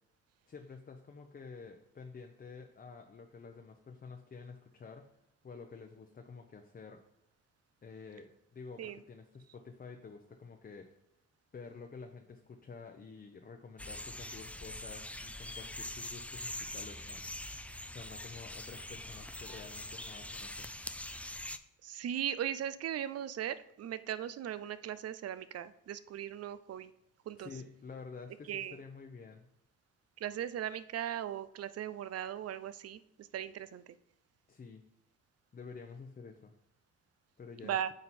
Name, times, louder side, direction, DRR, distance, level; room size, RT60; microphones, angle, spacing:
voice 1, 0.5-5.1 5.4-7.0 7.8-10.9 11.5-17.2 17.9-20.7 27.4-29.5 34.5-34.8 35.5-36.5 37.4-37.8, left 5 dB, 30° left, 3 dB, 0.8 m, -50 dB
sound 1, 13.8-21.6, left 1 dB, 5° left, 0.4 m, -43 dB
voice 2, 21.8-26.9 27.3-27.5 28.5-28.8 30.2-33.8 37.6-37.9, right 10 dB, 55° right, 15 dB, 0.6 m, -38 dB
9.0 x 5.2 x 4.3 m, 0.81 s
cardioid pair, 90°, 30 cm